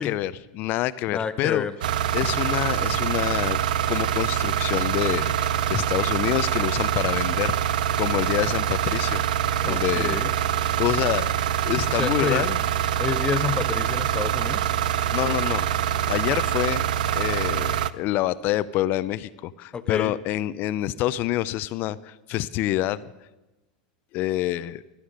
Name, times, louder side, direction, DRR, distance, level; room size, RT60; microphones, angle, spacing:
voice 1, 0.0-1.6 2.1-3.6 3.9-9.2 9.6-10.3 10.8-11.3 11.7-12.6 15.1-15.7 16.1-16.8 17.1-23.0 24.1-24.8, left 14 dB, 45° left, 17 dB, 0.5 m, -27 dB
voice 2, 1.1-1.8 9.7-10.3 12.0-12.5 13.0-14.7 19.7-20.1, left 6 dB, 20° left, 11 dB, 0.8 m, -29 dB
sound 1, 1.8-17.9, right 10 dB, 80° right, 0.5 m, -25 dB
15.0 x 11.0 x 6.6 m, 1.0 s
supercardioid pair, 115°, 4 cm